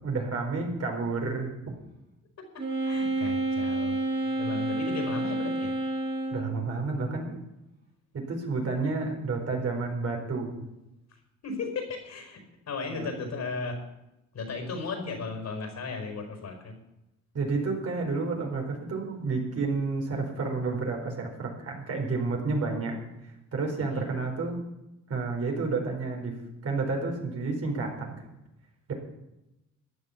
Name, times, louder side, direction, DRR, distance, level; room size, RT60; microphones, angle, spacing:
voice 1, 0.0-1.7 6.3-7.4 8.1-10.6 12.9-13.1 17.3-23.0 23.5-24.6 25.1-26.3 26.6-28.2, right 3 dB, 55° right, 1 dB, 4.7 m, -30 dB
voice 2, 2.5-5.7 11.1-12.4 12.7-13.8 14.3-16.7 23.9-24.0, left 4 dB, 60° left, 5 dB, 4.9 m, -36 dB
Wind instrument woodwind instrument, 2.6-6.6, right 2 dB, 35° right, 4.8 m, -29 dB
14.5 x 10.0 x 7.1 m, 0.93 s
cardioid pair, 90°, 30 cm